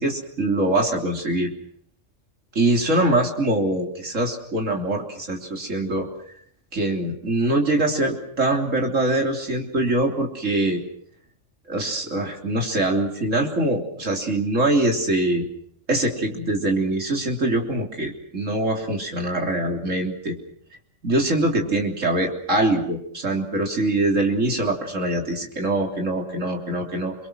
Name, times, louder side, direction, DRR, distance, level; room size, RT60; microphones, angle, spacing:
voice 1, 0.0-1.5 2.5-6.1 6.7-10.8 11.7-15.5 15.9-20.4 21.0-27.1, right 2 dB, 80° right, 2 dB, 3.7 m, -23 dB
29.0 x 24.0 x 6.3 m, 0.66 s
omnidirectional pair, 1.3 m